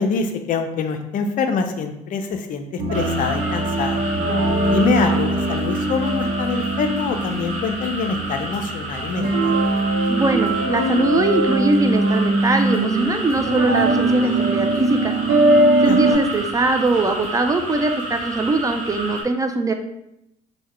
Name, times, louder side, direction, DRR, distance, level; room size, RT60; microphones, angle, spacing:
voice 1, 0.0-4.0 4.7-9.5 15.8-16.2, left 5 dB, 50° left, 7 dB, 0.4 m, -25 dB
sound 1, 2.8-16.1, right 2 dB, 60° right, 0.7 m, -21 dB
sound 2, 2.9-19.2, right 2 dB, 45° right, 1.1 m, -31 dB
voice 2, 10.1-15.1 15.8-19.7, right 2 dB, 20° right, 5 dB, 0.3 m, -21 dB
3.5 x 2.1 x 3.1 m, 0.82 s
hypercardioid pair, 60°, 18 cm